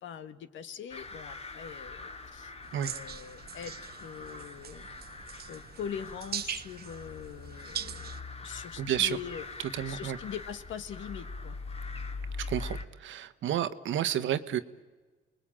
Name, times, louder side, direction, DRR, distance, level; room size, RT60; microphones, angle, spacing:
voice 1, 0.0-2.5 2.8-3.7 4.0-4.9 5.5-8.1 8.4-9.5 9.9-11.6, left 8 dB, 75° left, 11 dB, 1.6 m, -42 dB
sound 1, 0.9-12.8, left 3 dB, 30° left, 2.2 m, -43 dB
sound 2, 2.6-8.2, right 9 dB, 50° right, 0.8 m, -42 dB
voice 2, 8.8-9.2 9.7-10.2 12.5-14.6, right 10 dB, 75° right, 11 dB, 1.3 m, -30 dB
29.5 x 20.5 x 8.9 m, 1.3 s
cardioid pair, 90°, 20 cm